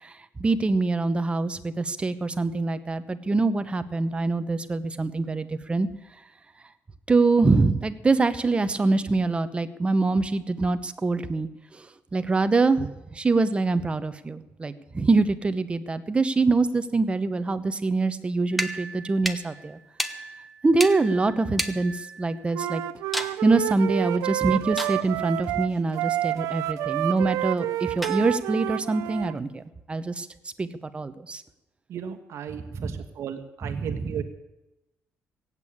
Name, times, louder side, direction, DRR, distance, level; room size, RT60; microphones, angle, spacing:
voice 1, 0.0-5.9 7.1-19.8 20.6-22.8 23.4-29.6 29.9-30.3 30.6-31.4 32.5-33.0 33.6-34.2, right 3 dB, 20° right, 11 dB, 0.9 m, -24 dB
sound 1, 18.5-22.6 23.1-23.4 24.8-25.3 28.0-28.6, equal, ahead, 1.1 m, -34 dB
Wind instrument woodwind instrument, 22.5-29.4, right 14 dB, 85° right, 0.5 m, -29 dB
voice 2, 31.9-34.2, right 8 dB, 60° right, 7 dB, 1.3 m, -35 dB
17.5 x 8.4 x 8.6 m, 1.0 s
cardioid pair, 110°, 5 cm